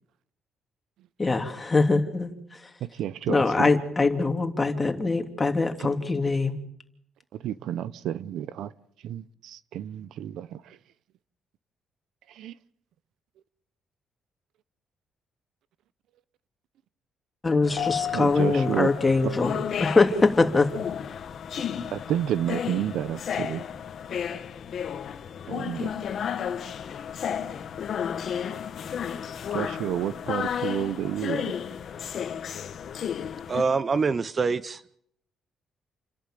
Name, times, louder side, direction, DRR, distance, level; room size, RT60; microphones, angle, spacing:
voice 1, 1.2-2.3 3.3-6.6 17.4-20.7, left 3 dB, 25° left, 3.0 m, -23 dB
voice 2, 3.0-3.7 7.4-8.7 9.0-10.6 12.4-12.5 18.1-18.9 19.2-19.3 21.9-23.6 25.5-25.9 29.5-31.5, right 11 dB, 80° right, 0.8 m, -30 dB
sound 1, 17.6-33.6, left 8 dB, 60° left, 1.6 m, -32 dB
voice 3, 33.5-34.8, right 4 dB, 40° right, 0.7 m, -25 dB
29.0 x 11.5 x 9.2 m
cardioid pair, 90°, 0 cm